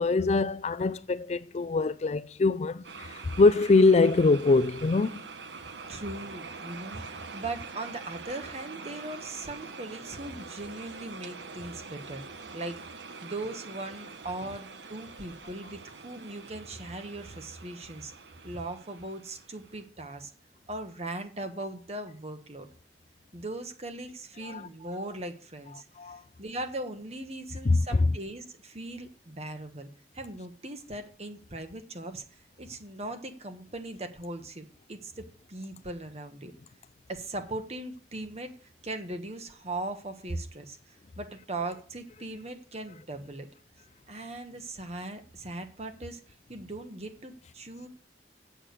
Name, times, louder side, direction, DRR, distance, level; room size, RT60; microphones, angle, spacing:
voice 1, 0.0-5.2 24.4-24.6 26.0-26.2 27.6-28.1, left 3 dB, 40° left, 0.4 m, -23 dB
sound 1, 2.8-19.8, right 4 dB, 80° right, 1.0 m, -45 dB
voice 2, 5.9-12.2 12.5-12.8 13.2-18.1 18.4-20.3 20.7-22.7 23.3-29.9 30.1-36.5 37.1-43.5 44.1-47.9, right 2 dB, 35° right, 1.4 m, -39 dB
8.7 x 7.4 x 6.5 m
head